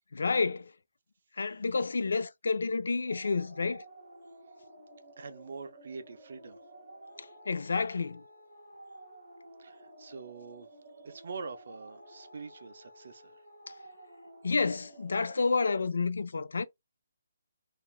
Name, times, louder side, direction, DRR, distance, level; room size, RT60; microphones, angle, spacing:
voice 1, 0.1-0.7 1.4-3.8 7.5-8.2 14.4-16.6, left 4 dB, 60° left, 0.3 m, -29 dB
sound 1, 3.1-15.9, right 1 dB, 25° right, 1.0 m, -52 dB
voice 2, 5.2-6.6 9.6-10.7 11.0-13.4, right 4 dB, 40° right, 0.4 m, -44 dB
3.2 x 2.4 x 2.3 m
hypercardioid pair, 180°, 0 cm